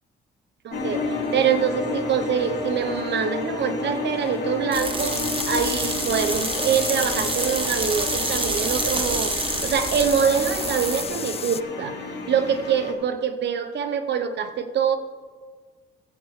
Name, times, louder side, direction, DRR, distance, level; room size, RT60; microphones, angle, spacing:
voice 1, 0.6-5.2 5.5-15.0, right 7 dB, 60° right, 9 dB, 0.9 m, -25 dB
sound 1, 0.7-12.9, left 3 dB, 55° left, 2.3 m, -31 dB
sound 2, 4.7-11.0, right 3 dB, 25° right, 1.1 m, -28 dB
sound 3, 5.0-11.6, left 7 dB, 30° left, 0.4 m, -33 dB
16.5 x 8.3 x 3.2 m, 1.5 s
cardioid pair, 90°, 20 cm